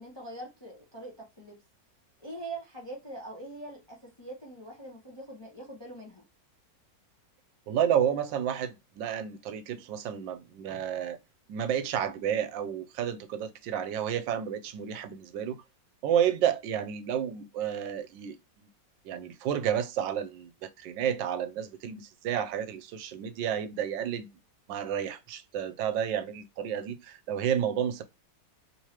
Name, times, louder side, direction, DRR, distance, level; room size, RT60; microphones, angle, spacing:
voice 1, 0.0-1.6 2.2-6.2, right 2 dB, 25° left, 0.5 m, -43 dB
voice 2, 7.7-11.2 11.5-15.6 16.0-18.4 19.0-24.3 24.7-28.0, right 9 dB, 85° right, 1.3 m, -31 dB
3.5 x 3.1 x 2.9 m
omnidirectional pair, 2.0 m